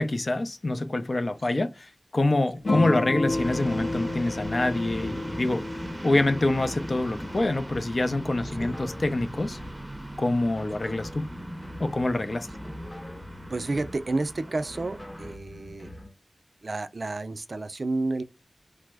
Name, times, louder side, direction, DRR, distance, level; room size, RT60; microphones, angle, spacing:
voice 1, 0.0-5.6 6.0-9.6 10.2-11.3 11.8-12.5, left 2 dB, 60° left, 0.4 m, -26 dB
sound 1, 2.6-7.6, left 2 dB, 90° left, 0.8 m, -31 dB
sound 2, 3.3-15.4, equal, 15° right, 0.6 m, -39 dB
sound 3, 8.3-9.9 10.4-12.0 12.5-14.1 14.6-16.2, left 1 dB, 25° left, 0.8 m, -43 dB
voice 2, 13.5-15.9 16.6-18.2, right 2 dB, 65° right, 0.3 m, -30 dB
3.1 x 2.0 x 3.4 m
wide cardioid pair, 65°, 0 cm